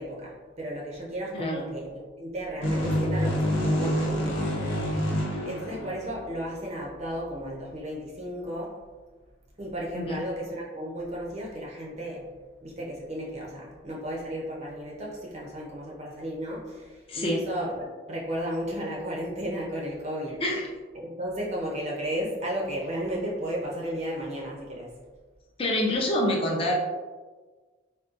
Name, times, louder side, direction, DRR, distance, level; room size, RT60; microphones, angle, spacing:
voice 1, 0.0-1.9 2.2-8.8 9.6-12.2 12.6-20.4 20.9-24.9, equal, 35° right, -3 dB, 0.5 m, -34 dB
sound 1, 2.6-6.4, equal, 75° left, 0.8 m, -27 dB
voice 2, 25.6-26.7, left 1 dB, 30° left, -2 dB, 0.4 m, -26 dB
3.7 x 2.2 x 2.4 m, 1.3 s
head